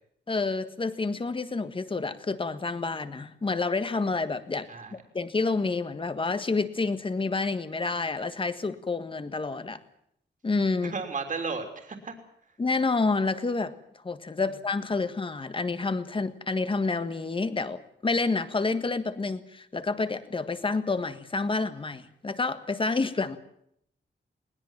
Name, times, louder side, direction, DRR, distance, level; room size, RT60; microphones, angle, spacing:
voice 1, 0.3-9.8 10.4-10.9 12.6-13.7 14.0-23.4, left 3 dB, 30° left, 11 dB, 1.6 m, -29 dB
voice 2, 10.8-12.1 14.4-14.5, right 4 dB, 45° right, 5 dB, 3.4 m, -34 dB
21.5 x 20.0 x 7.5 m, 0.71 s
wide cardioid pair, 165°, 19 cm